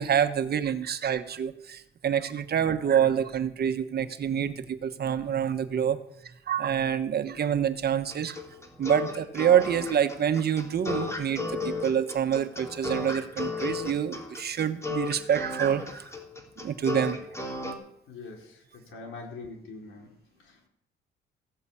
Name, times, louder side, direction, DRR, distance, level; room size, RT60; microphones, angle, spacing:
voice 1, 0.0-6.0 6.5-8.4 8.8-16.0 16.6-17.2, right 9 dB, 55° right, 9 dB, 1.3 m, -27 dB
sound 1, 8.1-17.7, left 3 dB, 15° left, 2.9 m, -34 dB
voice 2, 18.1-20.7, left 3 dB, 80° left, 1 dB, 4.4 m, -44 dB
15.5 x 8.1 x 8.6 m, 0.77 s
cardioid pair, 90°, 20 cm